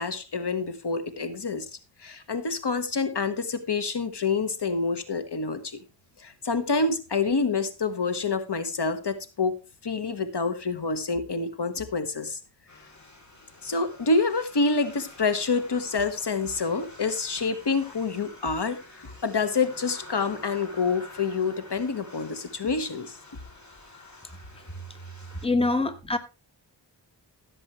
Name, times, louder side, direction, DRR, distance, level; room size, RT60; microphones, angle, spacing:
voice 1, 0.0-1.7 2.0-5.8 6.2-9.6 9.8-12.4 13.6-23.2, left 4 dB, 65° left, 1.5 m, -27 dB
sound 1, 12.7-25.5, left 1 dB, 40° left, 3.4 m, -48 dB
voice 2, 25.4-26.2, left 2 dB, 15° left, 1.2 m, -24 dB
16.0 x 7.6 x 3.1 m
wide cardioid pair, 70°, 44 cm